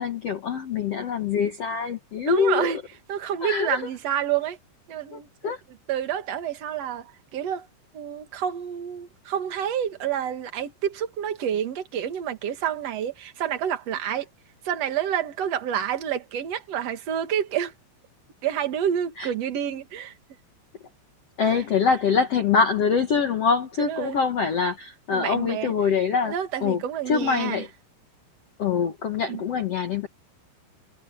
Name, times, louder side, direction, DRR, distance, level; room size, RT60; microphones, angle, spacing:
voice 1, 0.0-2.7 3.4-3.8 5.1-5.6 14.0-14.1 19.2-19.3 21.4-26.3 26.6-27.7 28.6-30.1, left 6 dB, 85° left, 1.3 m, -24 dB
voice 2, 2.3-2.8 3.1-4.6 4.9-5.5 5.9-7.7 7.9-14.3 14.6-17.7 18.4-20.1 23.8-24.2 25.1-25.7 26.2-27.6 29.3-29.4, right 9 dB, 50° right, 2.1 m, -28 dB
omnidirectional pair, 5.1 m